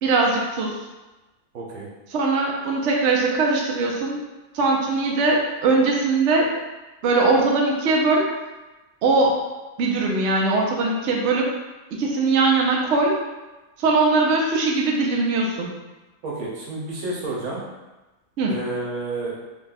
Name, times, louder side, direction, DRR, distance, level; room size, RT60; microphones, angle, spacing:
voice 1, 0.0-0.8 2.1-4.2 4.5-6.5 7.0-8.3 9.0-9.3 9.8-11.5 11.9-13.2 13.8-15.7 18.4-18.5, right 3 dB, 65° right, -1 dB, 0.8 m, -20 dB
voice 2, 1.5-1.9 16.2-17.6 18.5-19.3, right 2 dB, 90° right, -4 dB, 1.3 m, -30 dB
3.5 x 2.2 x 3.9 m, 1.1 s
omnidirectional pair, 1.5 m